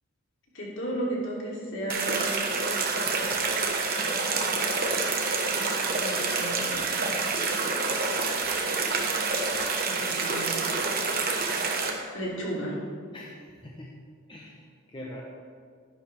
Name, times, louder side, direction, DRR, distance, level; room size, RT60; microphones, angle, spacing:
voice 1, 0.5-2.4 6.0-6.9 9.8-10.7 12.1-12.8, right 1 dB, 55° left, -5 dB, 2.9 m, -34 dB
sound 1, 1.9-11.9, right 4 dB, 40° right, 1.1 m, -27 dB
voice 2, 13.1-14.0 14.3-15.2, left 1 dB, 20° left, -2 dB, 0.8 m, -43 dB
12.0 x 10.5 x 3.4 m, 2.1 s
head